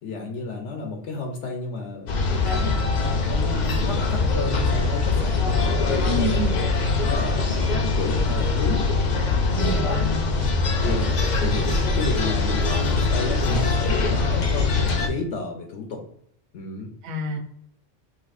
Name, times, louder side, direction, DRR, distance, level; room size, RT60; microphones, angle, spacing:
voice 1, 0.0-2.8 3.3-6.3 7.0-8.8 9.4-9.9 10.8-16.0 16.5-16.9, left 4 dB, 70° left, 2 dB, 0.9 m, -32 dB
sound 1, 2.1-15.1, left 3 dB, 50° left, 0.6 m, -22 dB
voice 2, 6.1-6.5 9.5-10.5 17.0-17.4, right 2 dB, 80° right, 0 dB, 1.1 m, -28 dB
4.0 x 2.6 x 2.4 m, 0.68 s
omnidirectional pair, 1.2 m